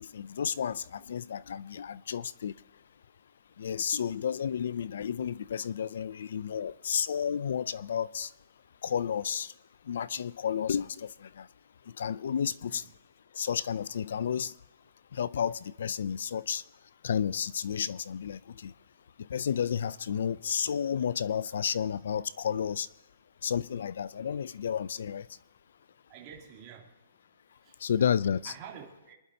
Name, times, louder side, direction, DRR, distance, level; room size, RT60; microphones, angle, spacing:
voice 1, 0.0-2.6 3.6-8.3 8.8-9.5 9.9-11.5 11.9-12.8 13.3-14.5 15.1-16.6 17.0-18.7 19.2-22.9 23.4-25.3 27.8-28.5, left 8 dB, 65° left, 0.4 m, -31 dB
voice 2, 26.1-26.9 27.6-28.2 28.4-29.2, right 8 dB, 25° right, 2.8 m, -48 dB
27.0 x 11.5 x 2.8 m
hypercardioid pair, 170°, 0 cm